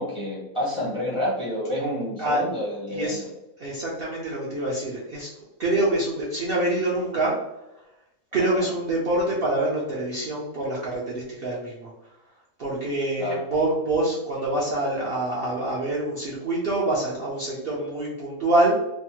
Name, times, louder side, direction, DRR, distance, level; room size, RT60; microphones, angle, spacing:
voice 1, 0.0-3.2 8.4-8.7 13.2-13.4, left 1 dB, 30° left, -6 dB, 0.6 m, -29 dB
voice 2, 2.9-3.2 3.6-5.3 5.6-7.3 8.3-11.9 12.6-18.8, right 1 dB, 55° right, -6 dB, 0.6 m, -25 dB
3.3 x 2.0 x 2.8 m, 0.92 s
omnidirectional pair, 1.5 m